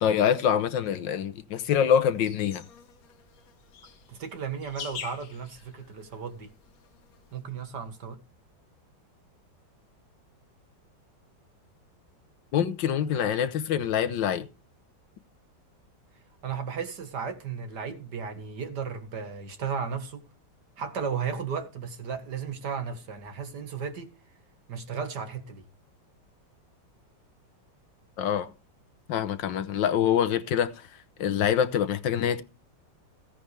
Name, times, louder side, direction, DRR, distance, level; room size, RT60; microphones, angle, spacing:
voice 1, 0.0-2.6 12.5-14.5 28.2-28.5 29.1-30.7 31.2-32.4, left 9 dB, 80° left, 1.7 m, -25 dB
sound 1, 1.6-7.4, left 7 dB, 55° left, 1.4 m, -46 dB
voice 2, 4.1-6.5 7.3-8.2 16.4-20.2 20.8-24.1 24.7-25.6, right 6 dB, 65° right, 2.2 m, -34 dB
16.0 x 9.9 x 3.3 m
omnidirectional pair, 2.0 m